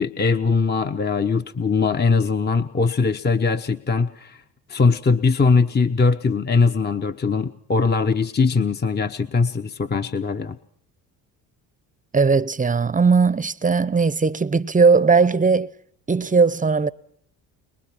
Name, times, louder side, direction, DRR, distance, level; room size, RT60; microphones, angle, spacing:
voice 1, 0.0-4.4 4.7-10.6, left 4 dB, 20° left, 0.9 m, -21 dB
voice 2, 12.1-15.7 16.1-16.9, right 4 dB, 15° right, 0.8 m, -18 dB
23.5 x 21.5 x 6.0 m
hypercardioid pair, 60°, 49 cm